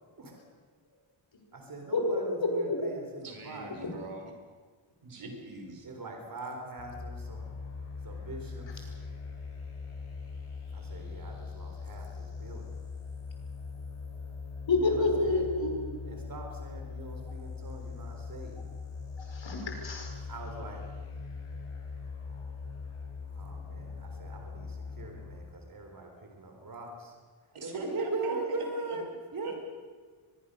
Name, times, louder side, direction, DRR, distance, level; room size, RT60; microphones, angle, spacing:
voice 1, 1.5-3.9 5.8-7.5 8.0-8.9 10.7-12.7 14.8-15.5 16.0-18.6 20.3-20.8 23.4-27.1 27.6-29.6, right 3 dB, 40° right, 3 dB, 3.9 m, -41 dB
voice 2, 3.2-4.3 5.0-5.9 27.5-29.0 29.4-29.5, right 2 dB, 80° right, 3 dB, 5.4 m, -40 dB
sound 1, 6.8-25.3, left 4 dB, 80° left, 6.6 m, -41 dB
voice 3, 14.7-15.8 19.3-20.1, left 3 dB, 60° left, 2 dB, 5.2 m, -28 dB
24.0 x 22.0 x 6.7 m, 1.5 s
wide cardioid pair, 180°, 50 cm